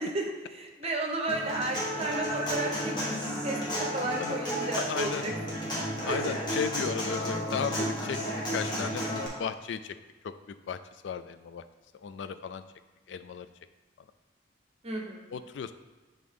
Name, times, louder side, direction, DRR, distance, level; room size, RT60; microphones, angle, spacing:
voice 1, 0.0-6.3 14.8-15.3, right 2 dB, 35° right, 2 dB, 0.8 m, -34 dB
Human voice / Acoustic guitar, 1.3-9.3, equal, 25° left, 1.4 m, -32 dB
voice 2, 4.8-5.2 6.1-8.2 8.5-9.1 9.4-9.9 10.2-10.3 10.7-10.8 11.0-11.6 12.0-12.6 13.1-13.5 15.3-15.7, left 6 dB, 70° left, 11 dB, 0.3 m, -34 dB
7.7 x 3.7 x 3.6 m, 1.3 s
head